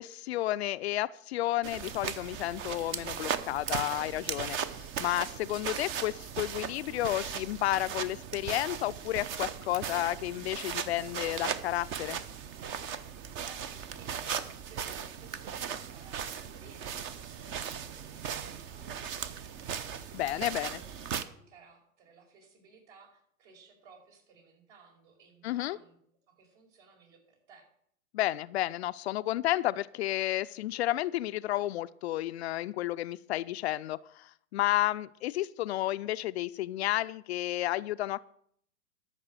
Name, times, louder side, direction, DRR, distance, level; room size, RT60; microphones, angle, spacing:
voice 1, 0.0-12.2 20.1-20.7 25.4-25.8 28.1-38.2, left 15 dB, 50° left, 14 dB, 0.5 m, -32 dB
sound 1, 1.6-21.2, right 7 dB, 30° right, 0.8 m, -38 dB
voice 2, 13.4-26.0 26.3-27.7, right 4 dB, 55° right, 1 dB, 5.6 m, -58 dB
13.0 x 6.0 x 7.6 m, 0.67 s
hypercardioid pair, 120°, 42 cm